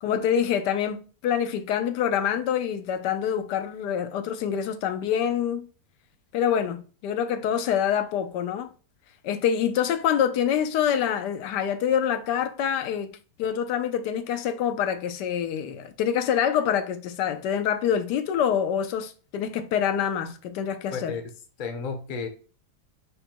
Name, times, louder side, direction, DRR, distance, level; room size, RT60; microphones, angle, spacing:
voice 1, 0.0-5.7 6.3-8.7 9.2-21.2, left 8 dB, 85° left, 1.2 m, -26 dB
voice 2, 21.6-22.3, left 5 dB, 45° left, 0.6 m, -32 dB
5.1 x 2.2 x 4.4 m
omnidirectional pair, 1.8 m